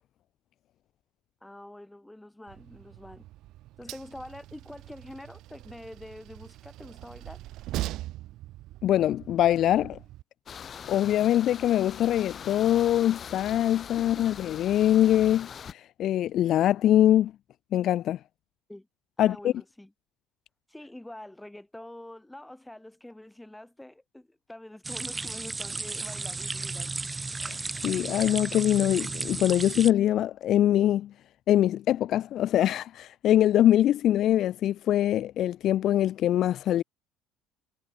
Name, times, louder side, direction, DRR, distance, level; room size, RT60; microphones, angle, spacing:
voice 1, 1.4-3.3 3.8-7.4 14.0-14.3 18.7-18.9 19.2-19.9 20.7-26.9, left 1 dB, 5° left, 5.8 m, -45 dB
Train, 2.5-10.2, right 16 dB, 65° right, 1.8 m, -41 dB
voice 2, 8.8-10.0 10.9-17.3 17.7-18.2 19.2-19.5 27.4-31.1 31.5-36.8, left 12 dB, 50° left, 0.3 m, -23 dB
sound 1, 10.5-15.7, left 7 dB, 35° left, 2.1 m, -42 dB
sound 2, 24.8-29.9, right 3 dB, 15° right, 1.5 m, -34 dB
cardioid pair, 130°, 0 cm